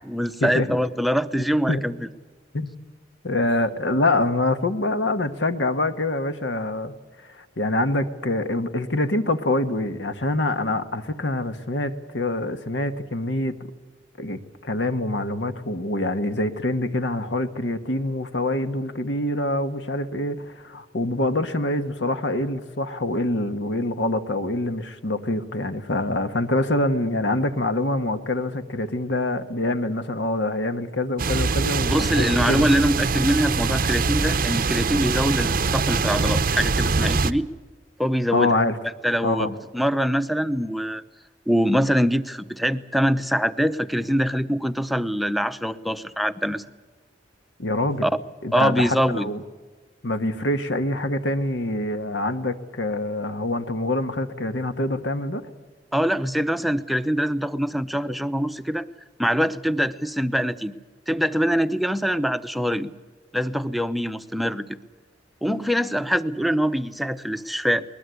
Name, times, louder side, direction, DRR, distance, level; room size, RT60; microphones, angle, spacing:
voice 1, 0.1-1.9 31.9-37.5 38.0-38.5 39.0-41.0 41.5-46.6 48.0-48.1 48.5-49.3 55.9-58.9 59.2-60.7 61.1-62.9 63.3-64.7 65.4-67.8, equal, ahead, 10 dB, 0.7 m, -23 dB
voice 2, 3.2-6.9 7.2-13.6 14.2-32.6 38.3-38.8 39.2-39.5 47.6-48.1 48.4-49.4 50.0-55.5, left 2 dB, 70° left, 9 dB, 1.4 m, -25 dB
sound 1, 31.2-37.3, right 4 dB, 50° right, 0.7 m, -23 dB
21.0 x 20.5 x 8.2 m, 1.4 s
head